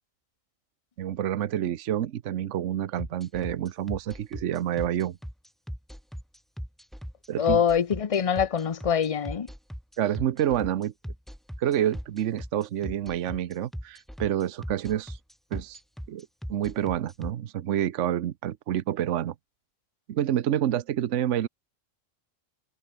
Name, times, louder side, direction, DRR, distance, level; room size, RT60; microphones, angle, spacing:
voice 1, 1.0-5.2 7.3-7.6 10.0-10.9 11.6-15.2 15.5-15.8 16.1-19.3 20.1-21.5, right 11 dB, 70° right, 1.1 m, -28 dB
sound 1, 3.0-17.3, equal, ahead, 2.9 m, -38 dB
voice 2, 7.4-9.5, left 7 dB, 35° left, 0.6 m, -24 dB
omnidirectional pair, 1.3 m